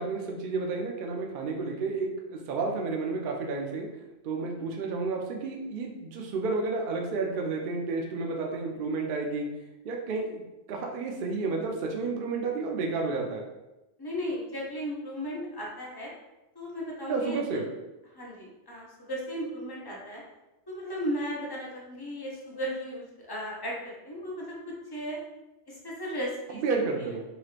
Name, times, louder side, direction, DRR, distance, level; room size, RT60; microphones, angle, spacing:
voice 1, 0.0-3.9 4.2-9.5 9.8-10.4 10.7-13.4 17.1-17.7 26.5-27.2, right 4 dB, 60° right, 0 dB, 0.6 m, -31 dB
voice 2, 14.0-16.1 16.5-17.6 18.1-20.2 20.7-25.2 25.7-26.6, equal, 30° left, -4 dB, 0.5 m, -36 dB
3.1 x 2.9 x 2.4 m, 1.0 s
omnidirectional pair, 1.2 m